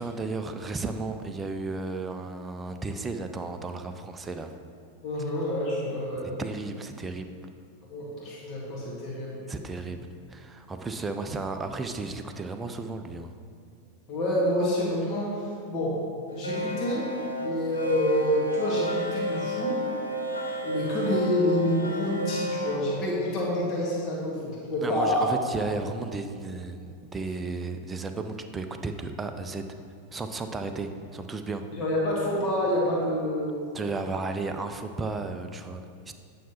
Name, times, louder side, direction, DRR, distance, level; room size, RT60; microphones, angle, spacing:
voice 1, 0.0-4.5 6.2-7.3 9.5-10.0 10.3-13.3 24.8-29.7 30.1-31.6 33.7-36.1, right 3 dB, 15° right, 6 dB, 0.4 m, -34 dB
voice 2, 5.0-6.3 7.9-9.5 14.1-16.0 16.3-17.1 17.4-19.8 20.6-25.3 31.7-33.6, left 1 dB, 35° left, -4 dB, 1.8 m, -27 dB
sound 1, 16.3-22.8, right 1 dB, 80° left, 0.6 m, -31 dB
9.1 x 5.8 x 2.9 m, 2.3 s
figure-of-eight pair, 90°, 0 cm